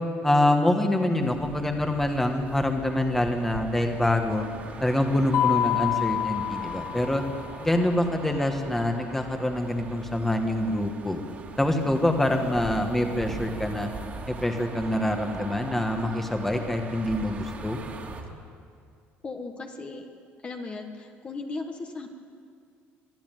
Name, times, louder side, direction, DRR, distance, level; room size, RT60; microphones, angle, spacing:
voice 1, 0.2-4.4 4.8-7.2 7.6-11.2 11.6-13.9 14.3-17.8, left 1 dB, 5° left, 4 dB, 1.6 m, -25 dB
sound 1, 1.2-18.2, right 4 dB, 35° right, 2.4 m, -41 dB
Mallet percussion, 5.3-7.4, left 12 dB, 55° left, 1.4 m, -27 dB
voice 2, 19.2-20.0 20.4-22.1, left 3 dB, 25° left, 4 dB, 1.5 m, -36 dB
22.5 x 13.0 x 9.2 m, 2.3 s
cardioid pair, 145°, 4 cm